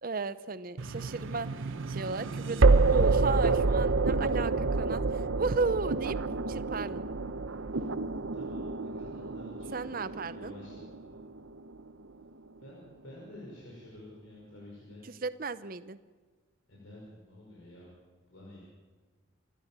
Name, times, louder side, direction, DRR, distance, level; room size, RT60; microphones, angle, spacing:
voice 1, 0.0-6.2 6.5-7.0 9.7-10.5 15.0-16.0, right 4 dB, 45° right, 14 dB, 0.7 m, -35 dB
sound 1, 0.8-11.8, right 3 dB, 75° right, 0.8 m, -28 dB
voice 2, 8.3-11.2 12.6-15.0 16.7-18.0 18.3-18.6, left 1 dB, 80° left, -4 dB, 5.6 m, -50 dB
27.5 x 13.0 x 7.5 m, 1.4 s
head